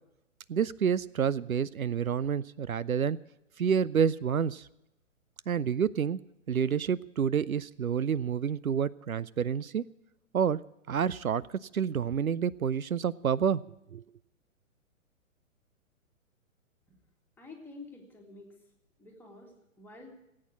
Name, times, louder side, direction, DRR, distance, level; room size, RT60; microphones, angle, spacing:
voice 1, 0.5-3.2 3.6-4.7 5.5-6.2 6.5-9.8 10.3-10.6 10.9-11.4 11.7-13.6 13.9-14.0, right 7 dB, 85° right, 20 dB, 0.5 m, -28 dB
voice 2, 17.4-18.5 19.0-20.1, left 3 dB, 5° left, -1 dB, 2.1 m, -49 dB
17.5 x 8.7 x 8.4 m, 0.86 s
figure-of-eight pair, 120°, 41 cm